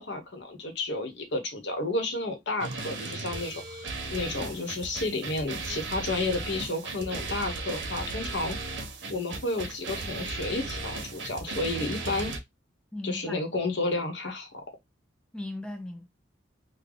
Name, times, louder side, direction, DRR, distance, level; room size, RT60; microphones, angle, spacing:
voice 1, 0.0-8.6 9.1-12.3 13.0-14.5, left 2 dB, 70° left, 1.0 m, -31 dB
sound 1, 2.6-12.4, right 3 dB, 70° right, 0.8 m, -36 dB
voice 2, 12.9-13.4 15.3-16.1, left 1 dB, 5° left, 0.4 m, -37 dB
3.4 x 2.2 x 3.7 m
head